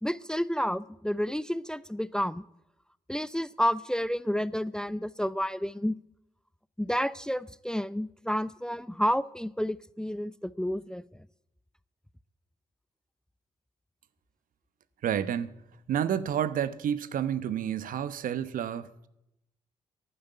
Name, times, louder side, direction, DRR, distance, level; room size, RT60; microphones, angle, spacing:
voice 1, 0.0-2.4 3.1-5.9 6.8-11.0, equal, 5° left, 0.6 m, -30 dB
voice 2, 15.0-15.5 15.9-19.1, right 9 dB, 60° right, 0.9 m, -30 dB
12.0 x 11.0 x 9.1 m
hypercardioid pair, 45°, 16 cm